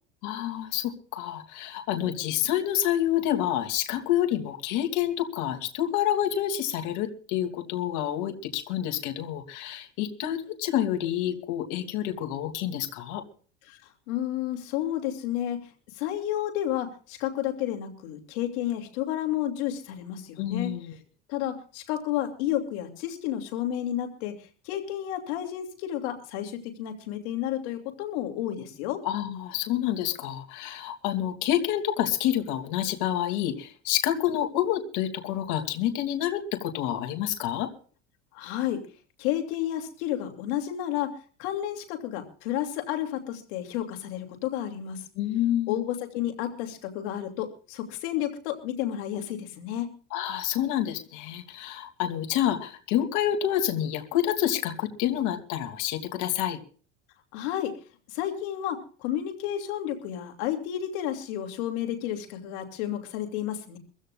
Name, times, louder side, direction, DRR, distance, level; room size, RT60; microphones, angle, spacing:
voice 1, 0.2-13.2 20.4-21.0 29.0-37.7 45.2-45.8 50.1-56.6, left 11 dB, 60° left, 5 dB, 2.8 m, -28 dB
voice 2, 14.1-15.7 16.0-20.7 21.3-24.4 24.6-29.0 38.3-38.8 39.2-41.1 41.4-45.0 45.7-49.9 57.3-57.7 58.1-63.8, left 11 dB, 75° left, 5 dB, 2.6 m, -31 dB
23.5 x 15.5 x 2.4 m, 0.40 s
supercardioid pair, 130°, 34 cm